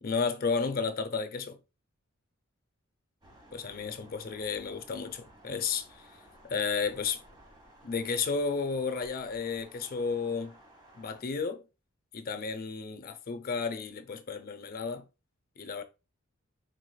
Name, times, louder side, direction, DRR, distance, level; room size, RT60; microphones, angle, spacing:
voice 1, 0.0-1.6 3.5-6.0 6.4-7.2 7.8-10.6 10.9-11.6 12.1-15.0 15.6-15.8, left 5 dB, 45° left, 0.6 m, -32 dB
Thunder, 3.2-11.2, right 1 dB, 20° right, 1.3 m, -56 dB
4.8 x 4.1 x 2.3 m
head